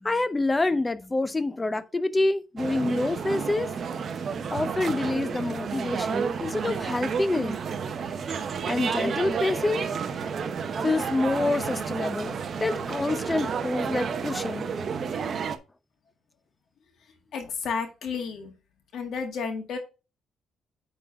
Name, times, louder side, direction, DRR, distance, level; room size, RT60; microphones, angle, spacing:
voice 1, 0.0-3.7 4.5-7.6 8.7-9.9 10.8-14.7, left 2 dB, 15° left, 0.6 m, -27 dB
sound 1, 2.6-15.6, right 6 dB, 45° right, 0.8 m, -31 dB
voice 2, 17.3-18.5 18.9-19.8, left 5 dB, 60° left, 1.8 m, -32 dB
9.3 x 3.9 x 4.6 m
cardioid pair, 150°, 0 cm